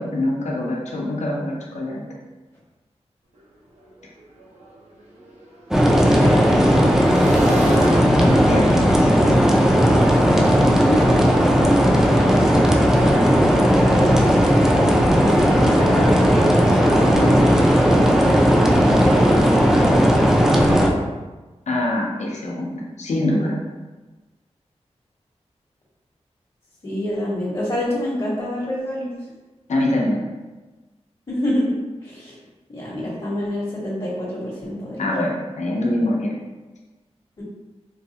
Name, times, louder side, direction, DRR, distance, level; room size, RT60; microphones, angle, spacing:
voice 1, 0.0-2.0 8.5-9.4 21.7-23.6 29.7-30.3 35.0-36.3, left 1 dB, 80° left, -2 dB, 0.6 m, -24 dB
Motorcycle / Engine, 3.3-3.4 3.7-10.8, equal, 80° right, 0.7 m, -34 dB
sound 1, 5.7-20.9, equal, 5° right, 0.4 m, -16 dB
voice 2, 5.8-7.0 10.9-11.0 13.5-14.4 15.2-17.4 17.9-20.3 26.8-29.1 31.3-31.8 32.0-32.3 32.7-35.1 37.4-37.5, equal, 40° left, -6 dB, 0.9 m, -27 dB
3.9 x 2.3 x 2.7 m, 1.2 s
wide cardioid pair, 85°, 12 cm